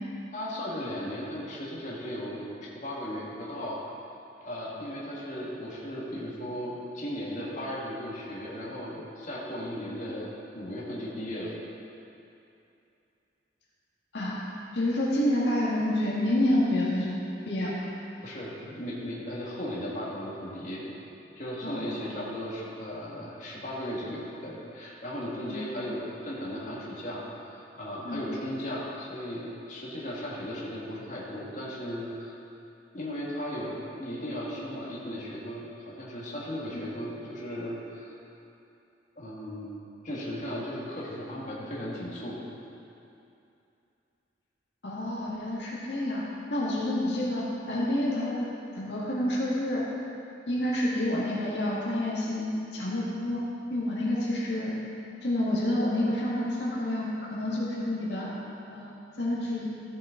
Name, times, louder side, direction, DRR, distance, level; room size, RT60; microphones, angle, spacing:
voice 1, 0.3-2.5 2.7-3.8 4.4-10.3 10.5-11.5 18.2-20.8 21.4-32.3 32.9-38.1 39.2-39.7 40.0-42.4, equal, 45° left, -6 dB, 1.9 m, -36 dB
voice 2, 14.7-17.2 17.5-17.9 21.6-22.1 25.5-25.6 28.0-28.2 36.7-36.8 44.8-46.2 46.5-48.5 48.7-49.8 50.5-53.4 53.7-54.8 55.2-58.3 58.7-59.7, left 1 dB, 75° left, -6 dB, 1.8 m, -28 dB
14.0 x 7.3 x 3.8 m, 2.7 s
head